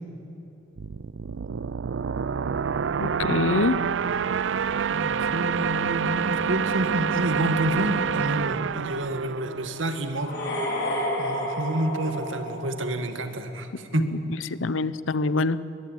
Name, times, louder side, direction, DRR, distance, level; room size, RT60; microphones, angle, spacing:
sound 1, 0.8-10.3, right 6 dB, 70° right, 0.4 m, -27 dB
voice 1, 3.0-3.8 14.0-14.2 14.5-15.6, left 3 dB, 85° left, 16 dB, 0.8 m, -25 dB
voice 2, 4.9-10.3 11.2-14.1, right 1 dB, 85° right, 8 dB, 2.1 m, -29 dB
sound 2, 10.1-13.1, equal, 60° left, 6.0 m, -30 dB
22.5 x 20.5 x 9.3 m, 3.0 s
head